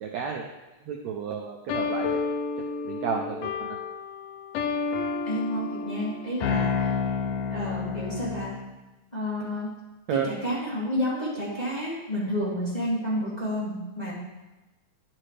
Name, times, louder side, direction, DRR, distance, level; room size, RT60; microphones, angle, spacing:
voice 1, 0.0-0.4 0.8-2.1 2.8-3.7 7.6-7.8 10.1-10.3, right 7 dB, 80° right, 2 dB, 1.6 m, -31 dB
sound 1, 1.7-8.6, left 5 dB, 85° left, 1.4 m, -30 dB
voice 2, 5.2-6.9 7.5-8.5 9.1-9.7 10.2-14.1, equal, 15° left, -8 dB, 2.1 m, -30 dB
10.5 x 7.5 x 3.3 m, 1.1 s
omnidirectional pair, 3.8 m